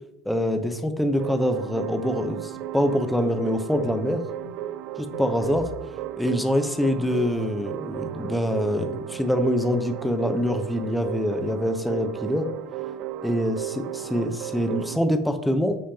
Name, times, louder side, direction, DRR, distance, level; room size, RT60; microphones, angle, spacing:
voice 1, 0.2-4.2 5.0-5.7 6.2-12.5 13.2-15.8, equal, ahead, 7 dB, 0.9 m, -25 dB
sound 1, 1.2-15.0, right 12 dB, 50° right, 0.4 m, -35 dB
sound 2, 3.8-4.0 4.4-4.6 5.1-5.8 6.8-7.5 8.0-8.9, left 3 dB, 55° left, 2.1 m, -43 dB
11.5 x 4.9 x 2.9 m, 0.83 s
figure-of-eight pair, 70°, 0 cm